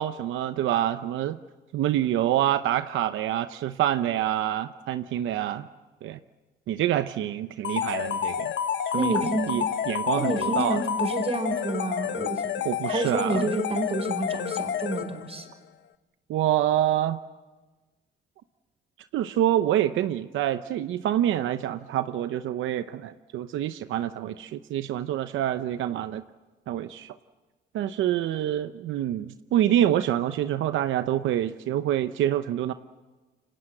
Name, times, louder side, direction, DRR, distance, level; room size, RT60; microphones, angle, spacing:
voice 1, 0.0-1.4 1.7-5.7 6.0-6.2 6.7-8.5 8.9-9.1 9.5-10.8 12.6-13.5 16.3-17.2 19.1-26.2 26.7-27.2 27.7-32.7, right 12 dB, 85° right, 10 dB, 0.8 m, -26 dB
sound 1, 7.6-15.4, left 8 dB, 65° left, 1.4 m, -29 dB
voice 2, 8.9-9.6 10.2-12.5 12.9-15.5, right 2 dB, 30° right, 7 dB, 4.7 m, -29 dB
28.0 x 25.0 x 7.8 m, 1.2 s
cardioid pair, 90°, 20 cm